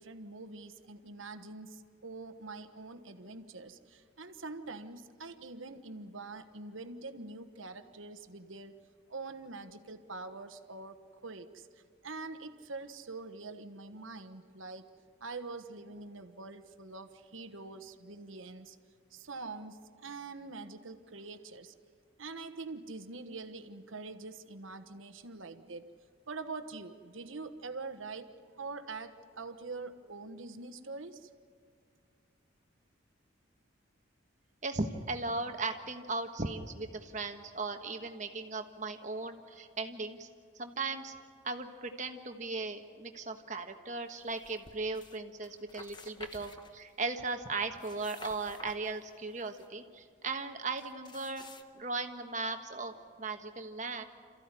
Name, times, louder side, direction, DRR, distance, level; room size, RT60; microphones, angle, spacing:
voice 1, 0.0-8.8 9.1-11.7 12.0-14.9 15.2-18.8 19.1-21.7 22.2-25.9 26.3-31.3, right 3 dB, 85° right, 9 dB, 1.3 m, -44 dB
voice 2, 34.6-40.3 40.6-41.1 41.4-51.4 51.7-52.9 53.2-54.0, right 3 dB, 35° right, 6 dB, 1.4 m, -37 dB
sound 1, 44.2-45.2 45.4-47.2 47.6-49.7 50.8-51.6, left 3 dB, 20° left, 1.0 m, -52 dB
27.5 x 15.0 x 9.8 m, 2.3 s
head